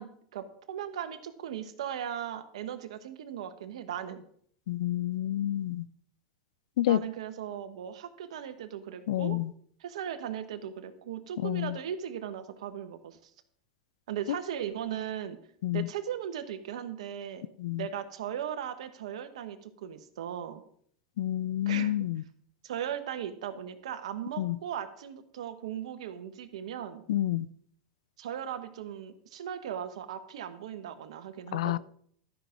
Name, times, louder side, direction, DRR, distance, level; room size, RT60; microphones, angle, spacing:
voice 1, 0.0-4.2 6.9-9.4 9.8-13.3 14.1-15.4 15.7-17.4 17.7-20.6 21.7-22.1 22.6-27.0 28.2-31.8, right 9 dB, 80° right, 1.2 m, -38 dB
voice 2, 4.7-5.9 6.8-7.0 9.1-9.5 11.4-11.8 15.6-15.9 17.6-17.9 21.2-22.2 24.4-24.6 27.1-27.5 31.5-31.8, left 13 dB, 80° left, 0.4 m, -29 dB
12.5 x 6.0 x 5.2 m
hypercardioid pair, 110°, 3 cm